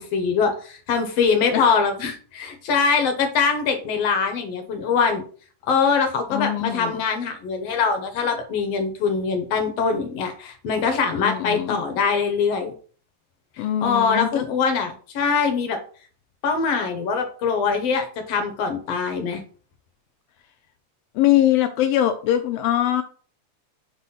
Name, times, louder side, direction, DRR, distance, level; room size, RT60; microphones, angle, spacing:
voice 1, 0.0-5.2 5.6-12.7 13.8-15.8 16.4-19.4, left 5 dB, 65° left, 6 dB, 1.8 m, -23 dB
voice 2, 6.3-7.0 11.1-11.8 13.6-14.4 21.1-23.0, left 12 dB, 85° left, 8 dB, 1.4 m, -22 dB
6.0 x 4.1 x 5.5 m, 0.43 s
omnidirectional pair, 3.3 m